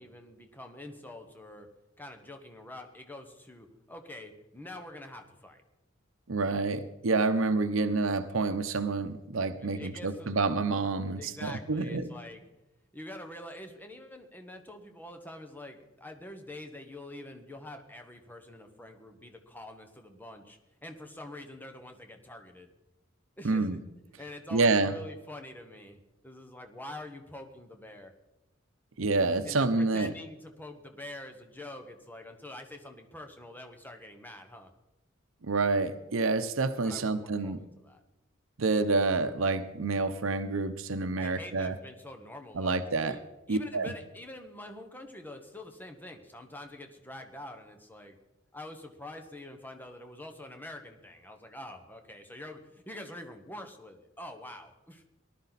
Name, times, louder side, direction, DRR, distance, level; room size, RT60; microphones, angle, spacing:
voice 1, 0.0-1.7 2.0-5.6 9.6-10.4 11.2-12.4 12.9-22.7 23.4-23.8 24.2-26.0 26.2-28.1 29.4-34.7 36.8-38.0 41.2-43.2 43.5-48.2 48.5-55.0, left 1 dB, 10° left, 5 dB, 1.3 m, -46 dB
voice 2, 6.3-12.1 23.4-23.8 24.5-24.9 29.0-30.1 35.4-37.6 38.6-41.7 42.5-43.2 43.5-43.9, right 3 dB, 85° right, 10 dB, 0.8 m, -28 dB
19.0 x 12.0 x 4.1 m, 0.98 s
head